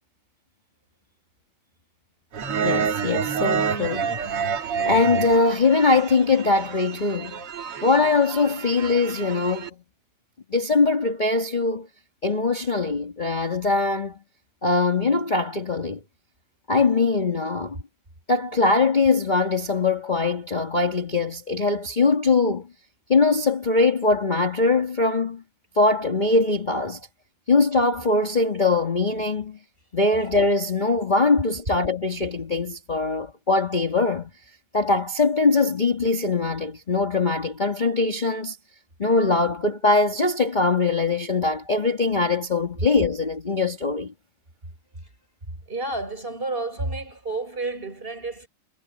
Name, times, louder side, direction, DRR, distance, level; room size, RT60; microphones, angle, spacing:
sound 1, 2.3-9.7, right 6 dB, 85° right, 3.1 m, -28 dB
voice 1, 2.6-7.4 7.8-9.7 10.5-11.9 12.2-14.2 14.6-16.0 16.7-17.8 18.3-22.7 23.1-25.4 25.8-27.0 27.5-29.6 29.9-34.3 34.7-38.6 39.0-44.1, left 3 dB, 20° left, 2.0 m, -22 dB
voice 2, 45.7-48.5, right 2 dB, 25° right, 5.9 m, -30 dB
omnidirectional pair, 2.4 m